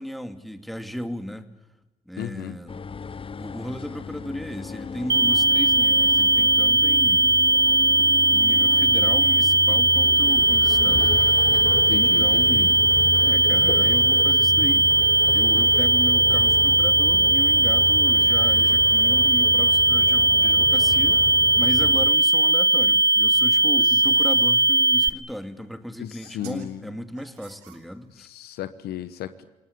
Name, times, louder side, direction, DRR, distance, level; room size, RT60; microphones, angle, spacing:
voice 1, 0.0-1.5 2.1-2.8 3.3-7.4 8.3-11.2 11.9-14.9 15.3-28.3, equal, ahead, 8 dB, 2.5 m, -35 dB
voice 2, 2.2-2.5 11.9-12.7 26.0-26.8 28.2-29.4, left 12 dB, 65° left, 13 dB, 1.2 m, -34 dB
sound 1, 2.7-22.1, left 5 dB, 30° left, 1.0 m, -33 dB
sound 2, 5.1-25.1, right 2 dB, 25° right, 1.1 m, -19 dB
sound 3, 23.2-24.5 25.6-25.7 26.2-26.7 27.2-28.2, right 10 dB, 80° right, 3.4 m, -50 dB
27.5 x 19.0 x 8.7 m, 1.1 s
hypercardioid pair, 60°, 17 cm